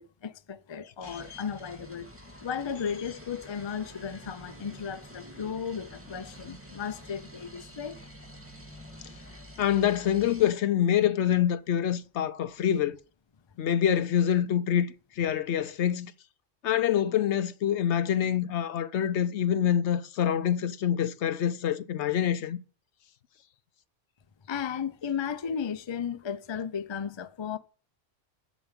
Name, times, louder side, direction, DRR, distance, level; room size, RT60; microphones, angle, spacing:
voice 1, 0.0-2.1 2.4-8.0 24.5-27.6, left 7 dB, 35° left, 0.5 m, -35 dB
voice 2, 1.0-1.4 9.6-13.0 13.6-16.1 16.6-22.6, left 10 dB, 70° left, 1.0 m, -26 dB
sound 1, 1.0-10.5, equal, 10° right, 1.6 m, -48 dB
7.1 x 7.0 x 8.2 m
omnidirectional pair, 1.2 m